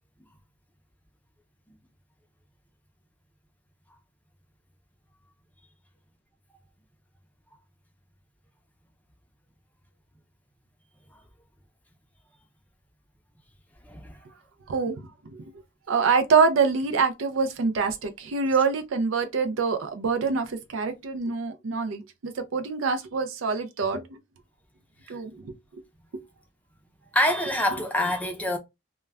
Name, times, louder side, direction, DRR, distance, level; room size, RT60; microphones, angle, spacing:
voice 1, 13.8-14.2 25.0-25.1 27.1-28.6, left 1 dB, 10° left, 0.5 m, -26 dB
voice 2, 15.9-24.2 25.1-25.5 26.1-26.2, right 5 dB, 80° right, 0.4 m, -25 dB
2.2 x 2.2 x 3.3 m
head